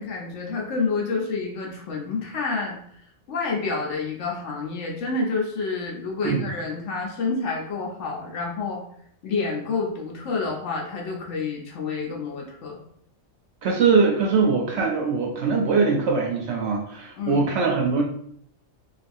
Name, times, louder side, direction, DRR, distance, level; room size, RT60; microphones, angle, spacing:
voice 1, 0.0-2.8 3.3-8.8 9.2-12.8 17.2-17.5, left 4 dB, 65° left, -1 dB, 0.9 m, -28 dB
voice 2, 13.6-18.0, right 4 dB, 65° right, 0 dB, 0.7 m, -22 dB
3.3 x 2.3 x 2.5 m, 0.67 s
omnidirectional pair, 1.4 m